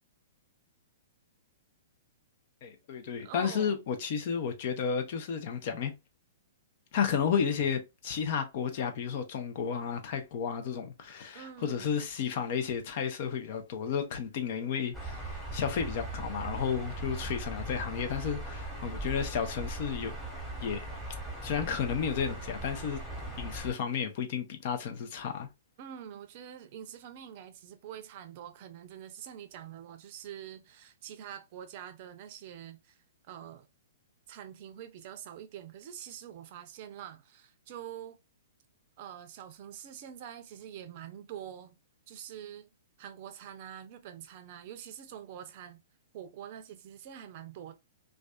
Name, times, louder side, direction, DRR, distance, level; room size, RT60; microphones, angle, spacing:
voice 1, 2.6-5.9 6.9-20.1 20.6-20.8 21.4-23.0 23.4-25.5, left 7 dB, 50° left, 0.6 m, -32 dB
voice 2, 3.2-3.7 11.3-12.0 25.8-33.0 33.3-33.7 34.3-38.2 39.0-41.8 42.1-42.7 43.0-45.8 46.1-47.7, right 10 dB, 50° right, 0.5 m, -45 dB
sound 1, 14.9-23.7, right 2 dB, 5° left, 1.1 m, -39 dB
2.5 x 2.3 x 2.2 m
hypercardioid pair, 125°, 0 cm